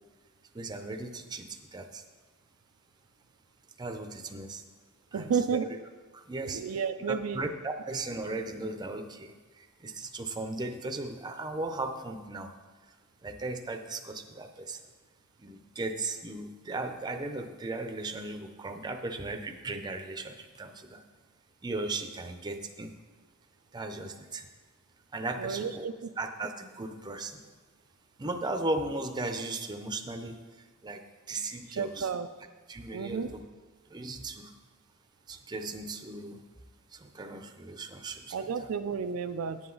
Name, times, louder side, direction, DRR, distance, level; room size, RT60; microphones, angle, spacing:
voice 1, 0.5-2.0 3.8-4.6 5.1-5.7 6.1-6.6 7.1-12.5 13.2-14.8 15.4-21.0 21.6-22.9 23.7-24.5 25.1-25.9 26.2-27.4 28.2-30.4 30.8-32.1 32.7-33.4 33.9-34.5 35.3-36.4 36.9-38.7, right 2 dB, 20° right, 5 dB, 0.6 m, -37 dB
voice 2, 5.1-5.7 6.5-7.4 25.4-25.9 31.8-32.3 32.9-33.3 38.3-39.6, right 6 dB, 75° right, 9 dB, 0.4 m, -31 dB
10.5 x 7.7 x 3.9 m, 1.4 s
head